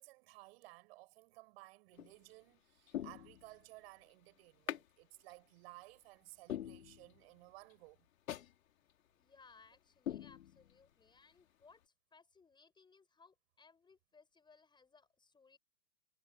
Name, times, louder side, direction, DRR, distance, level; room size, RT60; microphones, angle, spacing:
voice 1, 0.0-8.1, right 22 dB, 40° right, 7.9 m, -57 dB
sound 1, 1.9-2.3 2.9-3.8 4.7-4.9 5.3-5.4 5.9-6.0 6.5-7.4 7.7-7.8 8.3-8.5 8.9-9.0 9.5-9.7 10.1-10.9 11.3-11.4, left 11 dB, 55° left, 4.0 m, -44 dB
voice 2, 9.2-15.6, left 4 dB, 10° left, 6.8 m, -65 dB
figure-of-eight pair, 125°, 48 cm